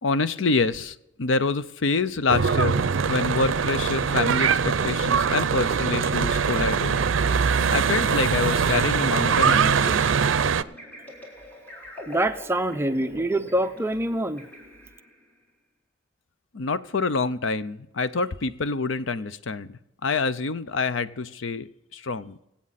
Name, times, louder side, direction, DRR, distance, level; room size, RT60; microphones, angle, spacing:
voice 1, 0.0-7.0 7.7-10.1 16.5-21.7 21.9-22.4, left 4 dB, 80° left, 14 dB, 0.6 m, -26 dB
Church bell / Traffic noise roadway noise, 2.3-10.6, right 6 dB, 85° right, 0.5 m, -22 dB
sound 1, 4.8-15.2, left 1 dB, 10° left, 4.0 m, -43 dB
voice 2, 12.1-14.5, right 1 dB, 15° right, 9 dB, 0.5 m, -25 dB
25.0 x 8.5 x 4.1 m, 0.84 s
head